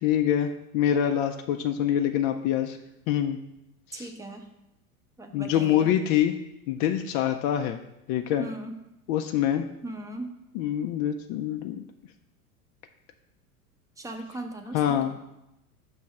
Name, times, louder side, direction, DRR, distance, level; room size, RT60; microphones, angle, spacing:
voice 1, 0.0-2.8 3.1-3.4 3.9-4.1 5.3-6.3 6.7-7.8 8.1-8.5 9.1-9.7 10.5-11.8 14.7-15.3, left 10 dB, 40° left, 5 dB, 0.4 m, -25 dB
voice 2, 3.9-4.5 5.2-5.9 8.4-8.8 9.8-10.3 14.0-15.1, right 2 dB, 5° right, 4 dB, 0.7 m, -38 dB
6.3 x 3.2 x 5.8 m, 0.89 s
hypercardioid pair, 95°, 44 cm